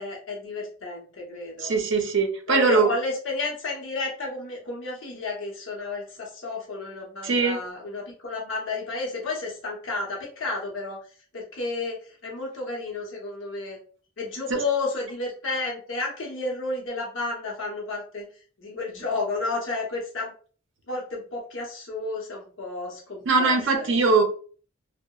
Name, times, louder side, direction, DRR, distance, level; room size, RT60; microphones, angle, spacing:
voice 1, 0.0-1.8 2.5-11.0 11.3-13.8 14.2-18.3 18.6-20.3 20.9-24.2, left 3 dB, 80° left, -2 dB, 0.8 m, -32 dB
voice 2, 1.6-2.9 7.2-7.6 14.5-14.6 23.3-24.2, right 4 dB, 65° right, 4 dB, 0.5 m, -21 dB
2.8 x 2.0 x 2.2 m, 0.41 s
head